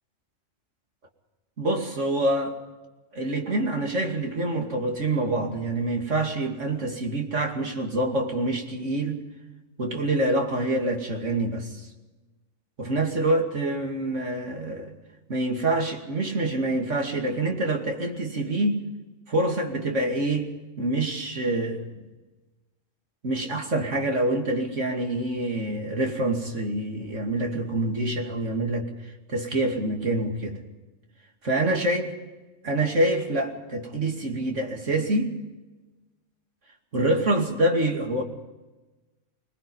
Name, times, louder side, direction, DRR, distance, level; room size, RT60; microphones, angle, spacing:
voice 1, 1.6-2.5 3.1-9.2 9.8-11.8 12.8-14.9 15.3-18.9 19.3-20.5 20.8-21.8 23.2-28.9 29.3-30.6 31.4-32.1 32.6-35.4 36.9-38.2, right 1 dB, 70° right, 2 dB, 2.9 m, -26 dB
25.0 x 20.5 x 5.5 m, 1.2 s
omnidirectional pair, 1.3 m